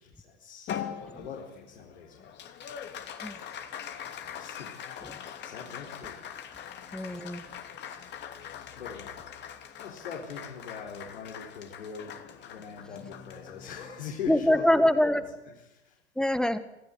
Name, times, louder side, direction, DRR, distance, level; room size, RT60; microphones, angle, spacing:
voice 1, 0.0-2.3 4.3-6.2 8.7-9.2 9.8-12.1 12.4-15.0 15.7-16.0, left 6 dB, 65° left, -2 dB, 4.8 m, -42 dB
Applause, 0.7-15.3, left 9 dB, 30° left, 2.7 m, -42 dB
voice 2, 6.9-7.4 14.3-15.2 16.2-16.6, left 1 dB, ahead, 12 dB, 1.8 m, -24 dB
27.5 x 16.0 x 9.6 m, 0.93 s
figure-of-eight pair, 95°, 34 cm